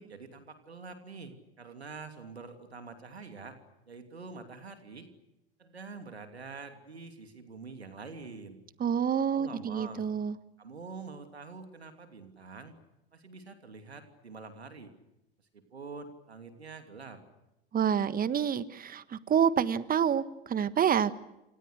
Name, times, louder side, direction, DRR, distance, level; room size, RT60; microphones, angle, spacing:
voice 1, 0.0-3.6 3.9-5.1 5.6-8.6 9.3-10.1 10.6-12.7 13.1-14.9 15.5-17.2, right 4 dB, 90° right, 7 dB, 3.0 m, -46 dB
voice 2, 8.8-10.3 17.7-21.1, right 8 dB, 30° right, 15 dB, 1.5 m, -28 dB
28.0 x 27.5 x 6.6 m, 0.94 s
hypercardioid pair, 80°, 31 cm